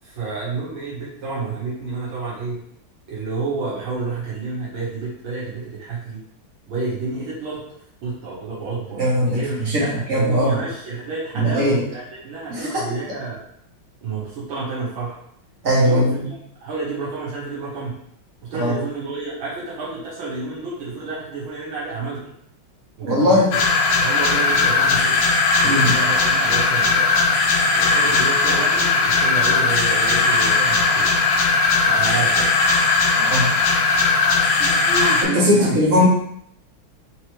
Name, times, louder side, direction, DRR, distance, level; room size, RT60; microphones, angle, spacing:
voice 1, 0.0-2.6 3.1-6.2 6.7-7.6 8.0-13.4 14.0-15.2 15.8-18.0 18.4-22.2 23.0-23.5 23.9-25.2 25.6-27.1 27.7-31.1 31.8-32.6 34.6-36.1, right 3 dB, 80° right, -7 dB, 2.0 m, -30 dB
voice 2, 9.0-9.4 9.6-10.6 11.3-11.8 12.5-12.8 15.6-16.3 18.6-18.7 23.0-23.5 25.6-25.9 33.3-33.5 35.2-36.1, equal, 40° right, -6 dB, 1.7 m, -19 dB
sound 1, 23.5-35.2, left 4 dB, 90° left, 1.6 m, -18 dB
4.5 x 3.0 x 3.1 m, 0.69 s
omnidirectional pair, 2.2 m